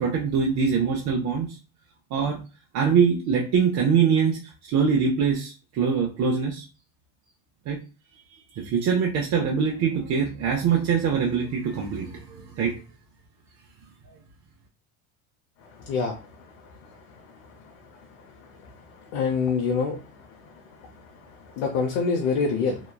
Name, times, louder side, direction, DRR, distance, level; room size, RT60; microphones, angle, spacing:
voice 1, 0.0-1.6 2.1-2.4 2.7-6.7 7.7-7.8 8.6-12.7, right 6 dB, 45° right, 0 dB, 0.6 m, -23 dB
voice 2, 15.8-16.2 18.6-18.7 19.1-20.0 21.6-22.8, left 5 dB, 70° left, 1 dB, 0.7 m, -25 dB
2.9 x 2.2 x 2.2 m, 0.33 s
supercardioid pair, 100°, 40 cm